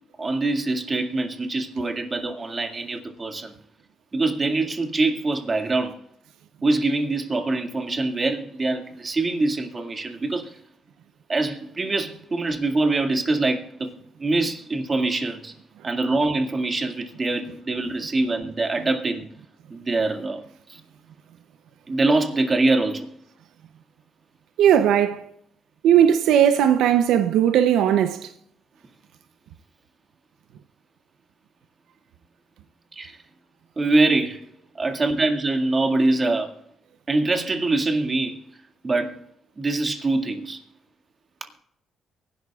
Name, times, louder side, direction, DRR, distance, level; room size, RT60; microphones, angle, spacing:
voice 1, 0.2-3.5 4.1-6.0 6.6-10.6 11.3-13.9 14.2-15.5 15.8-19.3 19.7-20.4 20.7-20.8 21.9-23.1 32.9-33.2 33.8-34.4 34.8-36.5 37.1-38.5 38.8-39.2 39.6-40.6, right 2 dB, 30° right, 2.0 m, -24 dB
voice 2, 24.6-25.3 25.8-28.3, right 9 dB, 85° right, 0.6 m, -18 dB
23.5 x 11.5 x 2.4 m
cardioid pair, 90°, 0 cm